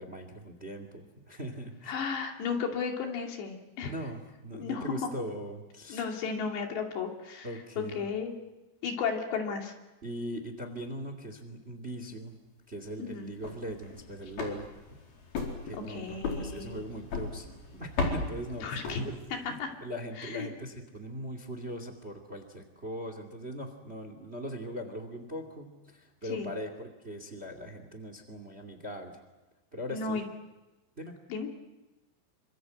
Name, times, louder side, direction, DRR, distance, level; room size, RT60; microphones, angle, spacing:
voice 1, 0.0-2.0 3.8-6.0 7.4-8.0 10.0-12.4 12.7-14.7 15.6-18.8 19.4-29.2 29.7-30.2 31.0-31.2, equal, 20° right, 8 dB, 1.8 m, -40 dB
voice 2, 1.9-3.9 4.5-5.0 5.9-7.5 7.8-8.4 8.8-9.7 13.0-13.3 15.9-16.8 18.6-19.0 19.3-19.7 20.2-20.5 26.3-26.5 29.9-30.2 31.3-31.5, left 5 dB, 80° left, 2 dB, 4.9 m, -34 dB
sound 1, 13.2-19.5, left 3 dB, 60° left, 6.2 m, -37 dB
28.0 x 25.5 x 8.0 m, 1.1 s
omnidirectional pair, 4.9 m